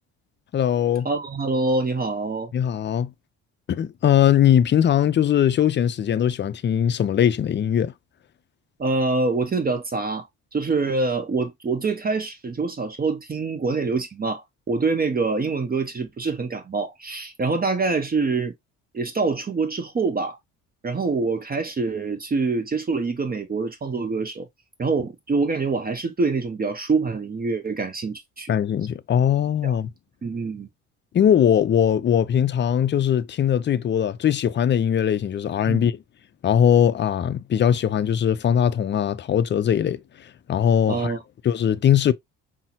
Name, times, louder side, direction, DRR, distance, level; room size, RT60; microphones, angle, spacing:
voice 1, 0.5-1.1 2.5-3.1 3.7-7.9 28.5-29.9 31.1-35.9 36.4-40.0 40.5-41.1 41.4-42.1, left 9 dB, 35° left, 0.5 m, -20 dB
voice 2, 1.0-2.5 8.8-10.3 10.5-14.4 14.7-18.5 18.9-20.4 20.8-24.5 24.8-28.5 29.6-29.7 30.2-30.7 35.7-35.9 40.9-41.2, right 3 dB, 25° right, 0.8 m, -25 dB
5.4 x 2.1 x 2.9 m
supercardioid pair, 75°, 33 cm